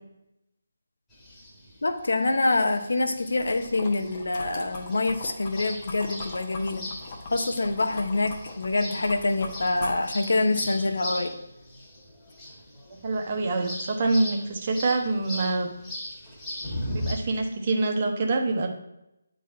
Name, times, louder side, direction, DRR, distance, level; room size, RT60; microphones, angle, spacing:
sound 1, 1.1-17.1, left 1 dB, 10° left, 1.7 m, -39 dB
voice 1, 1.8-6.9 7.3-11.3, left 2 dB, 70° left, 7 dB, 0.8 m, -26 dB
sound 2, 3.3-11.0, left 3 dB, 35° left, 1.1 m, -41 dB
voice 2, 12.9-15.7 16.9-18.7, right 3 dB, 40° right, 3 dB, 1.1 m, -26 dB
8.3 x 4.0 x 4.3 m, 0.89 s
figure-of-eight pair, 155°, 0 cm